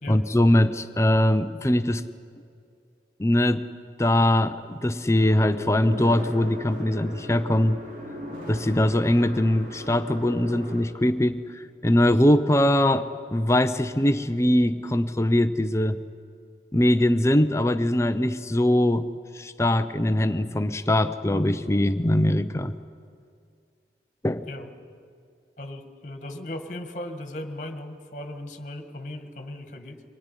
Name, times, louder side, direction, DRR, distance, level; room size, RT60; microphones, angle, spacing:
voice 1, 0.1-2.0 3.2-3.7 4.0-7.8 8.5-13.0 13.3-16.0 16.7-19.1 19.3-22.7 24.2-24.5, left 1 dB, 15° left, 10 dB, 0.6 m, -22 dB
sound 1, 5.2-10.8, equal, 45° right, 3.5 m, -38 dB
voice 2, 25.6-30.0, left 1 dB, 45° left, 7 dB, 1.7 m, -37 dB
24.0 x 17.5 x 9.8 m, 2.3 s
head